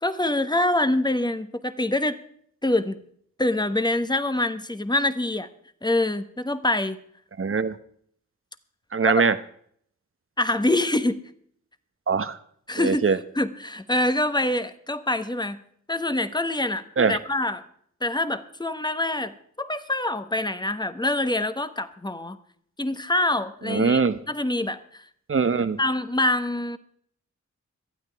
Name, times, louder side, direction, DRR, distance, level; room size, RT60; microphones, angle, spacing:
voice 1, 0.0-2.2 2.6-3.0 3.4-5.5 5.8-7.0 9.1-9.2 10.4-11.2 12.7-15.6 15.9-16.8 17.1-17.6 18.0-19.3 19.6-22.4 22.8-24.0 24.3-25.0 25.8-26.8, left 1 dB, 15° left, 11 dB, 1.2 m, -25 dB
voice 2, 7.4-7.8 8.9-9.3 12.1-12.4 12.8-13.2 17.0-17.2 23.7-24.2 25.3-25.8, right 5 dB, 45° right, 12 dB, 1.0 m, -22 dB
25.5 x 8.9 x 3.5 m, 0.63 s
cardioid pair, 50°, 31 cm